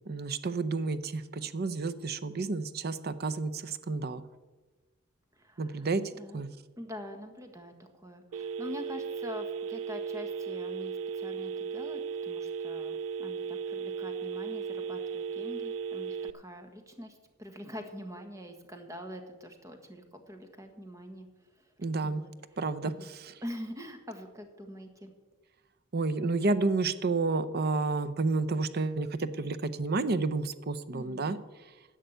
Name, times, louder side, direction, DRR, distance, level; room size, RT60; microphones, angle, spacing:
voice 1, 0.1-4.2 5.6-6.0 6.3-6.5 21.8-22.2 22.6-22.9 25.9-31.4, right 3 dB, 55° right, 12 dB, 0.7 m, -30 dB
voice 2, 5.3-5.9 6.1-6.4 6.8-21.7 22.0-23.1 23.4-25.1 30.9-31.3, equal, 15° right, 5 dB, 1.5 m, -45 dB
Telephone, 8.3-16.3, right 6 dB, 85° right, 0.4 m, -36 dB
11.5 x 7.5 x 7.9 m, 1.2 s
head